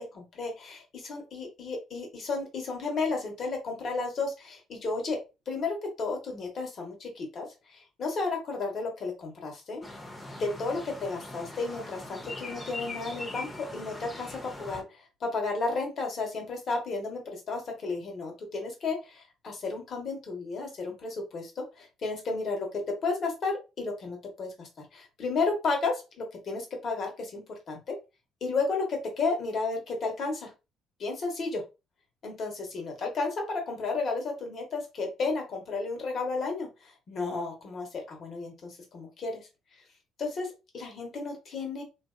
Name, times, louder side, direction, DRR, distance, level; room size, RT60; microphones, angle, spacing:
voice 1, 0.0-5.2 5.5-9.8 10.4-28.0 28.4-30.5 31.0-31.6 32.2-39.5 40.2-41.8, left 3 dB, 55° left, 2 dB, 1.1 m, -33 dB
sound 1, 9.8-14.8, left 2 dB, 15° left, 0.8 m, -41 dB
2.6 x 2.4 x 2.2 m, 0.27 s
hypercardioid pair, 55°, 0 cm